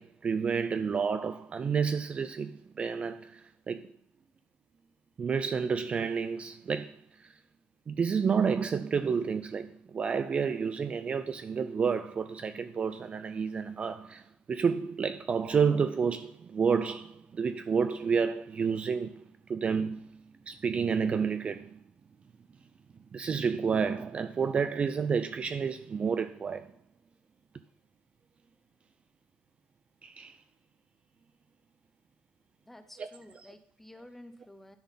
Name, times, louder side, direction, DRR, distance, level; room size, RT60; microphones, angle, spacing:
voice 1, 0.0-3.9 5.2-7.3 7.9-21.8 23.1-26.7 30.0-30.4 33.0-33.1 33.4-33.5, right 6 dB, 30° right, 0.4 m, -30 dB
voice 2, 32.7-34.8, left 1 dB, 5° left, 0.9 m, -51 dB
11.5 x 4.0 x 5.7 m
cardioid pair, 115°, 4 cm